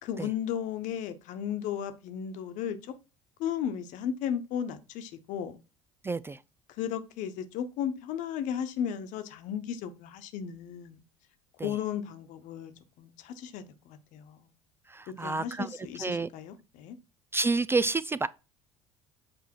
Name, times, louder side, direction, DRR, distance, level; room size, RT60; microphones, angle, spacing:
voice 1, 0.0-2.9 3.4-5.6 6.8-11.0 11.6-12.7 13.0-14.5 15.1-17.0, left 9 dB, 55° left, 1.2 m, -35 dB
voice 2, 6.0-6.4 11.6-11.7 14.9-15.7 16.0-16.3 17.3-18.3, right 3 dB, 15° right, 0.4 m, -29 dB
8.0 x 4.7 x 4.5 m
figure-of-eight pair, 60°, 15 cm